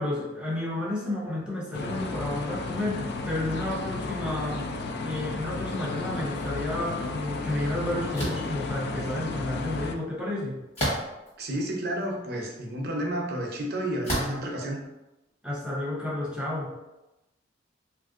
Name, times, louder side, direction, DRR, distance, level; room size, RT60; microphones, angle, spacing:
voice 1, 0.0-4.7 5.0-10.6 15.4-16.7, left 1 dB, 5° right, -6 dB, 0.6 m, -31 dB
sound 1, 1.7-9.9, left 3 dB, 60° left, 0.3 m, -33 dB
sound 2, 8.1-8.5 10.7-11.3 12.0-12.1 14.0-14.4, equal, 35° left, 1.1 m, -29 dB
voice 2, 11.4-14.8, right 1 dB, 55° right, 0 dB, 0.6 m, -31 dB
3.2 x 2.6 x 2.5 m, 0.98 s
head